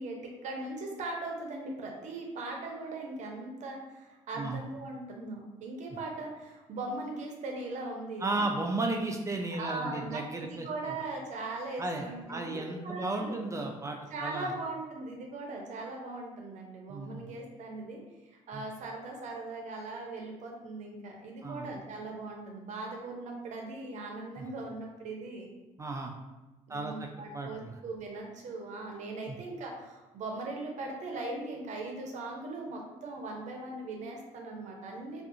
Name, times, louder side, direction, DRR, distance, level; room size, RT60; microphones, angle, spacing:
voice 1, 0.0-8.5 9.5-13.4 14.1-25.5 26.7-35.2, right 2 dB, 60° right, 1 dB, 0.6 m, -39 dB
voice 2, 8.2-10.7 11.8-14.5 16.9-17.3 18.5-18.6 21.4-21.7 24.4-24.5 25.8-26.1 26.7-27.1 27.3-27.7 29.3-29.4, right 2 dB, 20° right, 2 dB, 0.3 m, -34 dB
2.4 x 2.4 x 2.6 m, 1.1 s
supercardioid pair, 70°, 14 cm